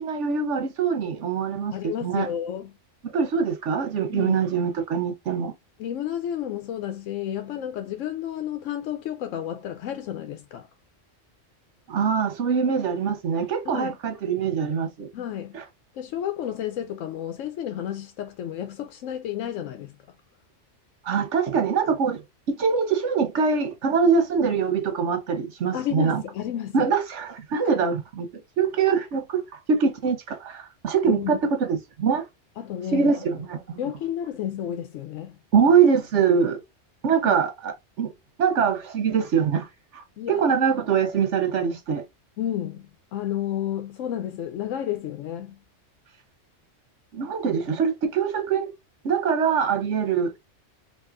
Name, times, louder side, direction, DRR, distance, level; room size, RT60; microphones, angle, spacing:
voice 1, 0.0-2.3 3.1-5.5 11.9-15.1 15.5-15.6 21.0-22.2 22.6-26.2 26.7-28.3 28.6-32.2 32.9-33.8 35.5-36.6 37.0-38.1 38.4-39.7 39.9-42.0 47.1-48.7 49.0-50.3, right 6 dB, 70° right, 1.3 m, -23 dB
voice 2, 1.7-2.7 4.1-4.4 5.8-10.7 13.6-14.0 15.1-15.6 15.9-19.9 25.7-26.9 31.1-31.4 32.6-33.2 33.8-35.4 37.2-37.3 40.2-40.6 42.4-45.6, left 10 dB, 85° left, 1.0 m, -31 dB
5.3 x 2.5 x 2.5 m
omnidirectional pair, 1.3 m